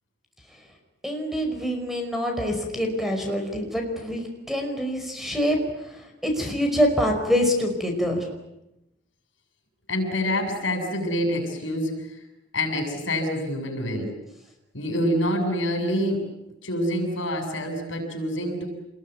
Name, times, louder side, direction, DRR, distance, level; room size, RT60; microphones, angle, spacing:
voice 1, 1.0-5.6 5.8-8.3, equal, ahead, 3 dB, 5.2 m, -25 dB
voice 2, 9.9-12.1 12.5-14.2 14.7-16.3 16.6-18.6, equal, 70° left, 5 dB, 7.5 m, -26 dB
29.0 x 21.5 x 9.5 m, 0.90 s
head